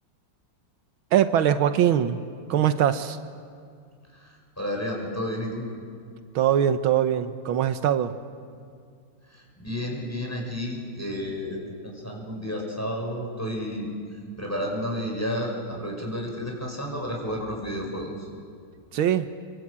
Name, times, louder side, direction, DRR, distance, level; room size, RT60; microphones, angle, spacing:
voice 1, 1.1-2.2 2.5-3.2 6.3-8.1 18.9-19.3, right 10 dB, 85° right, 10 dB, 1.7 m, -22 dB
voice 2, 4.1-5.7 9.3-18.3, equal, 5° left, -1 dB, 6.2 m, -31 dB
26.0 x 25.5 x 8.7 m, 2.2 s
omnidirectional pair, 2.2 m